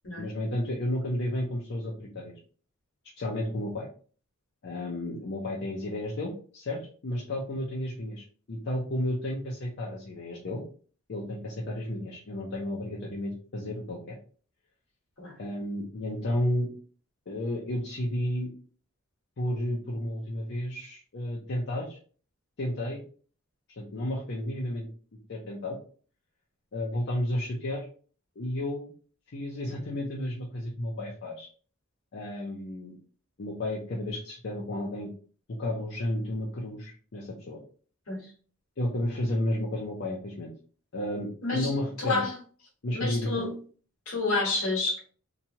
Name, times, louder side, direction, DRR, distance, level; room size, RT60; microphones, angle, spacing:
voice 1, 0.2-2.3 3.2-3.9 4.6-10.6 11.1-14.2 15.4-16.7 17.3-18.5 19.4-22.0 22.6-23.0 23.8-24.9 25.3-25.8 26.7-27.9 28.4-28.9 29.3-31.5 32.1-32.9 33.4-35.1 35.5-37.6 38.8-40.5 40.9-42.2 42.8-43.5, left 1 dB, 50° left, -2 dB, 0.5 m, -32 dB
voice 2, 41.4-41.7 42.0-42.3 42.9-43.5 44.1-45.0, left 3 dB, 75° left, -3 dB, 1.1 m, -29 dB
2.9 x 2.3 x 2.7 m, 0.42 s
head